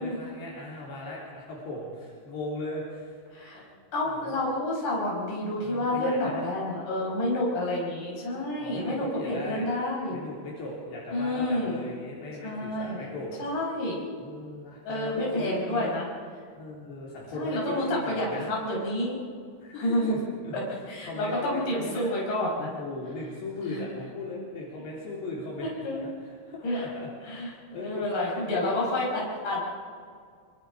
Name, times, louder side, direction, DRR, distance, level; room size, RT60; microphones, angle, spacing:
voice 1, 0.0-3.2 3.5-3.6 4.0-4.4 5.6-6.5 8.6-9.7 10.1-13.4 14.2-16.0 16.5-18.5 19.6-22.1 22.6-28.9, left 2 dB, 70° left, -5 dB, 5.5 m, -38 dB
voice 2, 3.3-3.6 3.9-10.2 11.1-11.8 12.4-13.1 13.4-14.1 14.8-16.0 17.3-19.2 19.7-20.2 20.5-22.8 23.6-23.8 25.8-26.0 26.6-26.9 27.2-29.6, left 1 dB, 45° left, -3 dB, 6.6 m, -29 dB
26.5 x 24.0 x 5.1 m, 2.1 s
omnidirectional pair, 5.1 m